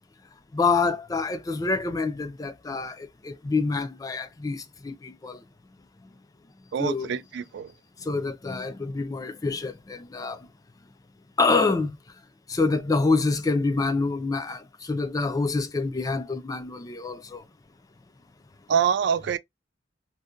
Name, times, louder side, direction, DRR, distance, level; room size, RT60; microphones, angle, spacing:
voice 1, 0.5-5.4 6.8-7.2 8.0-10.5 11.4-12.0 12.5-17.4, left 3 dB, 20° left, 0.3 m, -27 dB
voice 2, 6.7-7.7 18.7-19.4, right 7 dB, 65° right, 0.3 m, -25 dB
2.6 x 2.1 x 2.4 m
head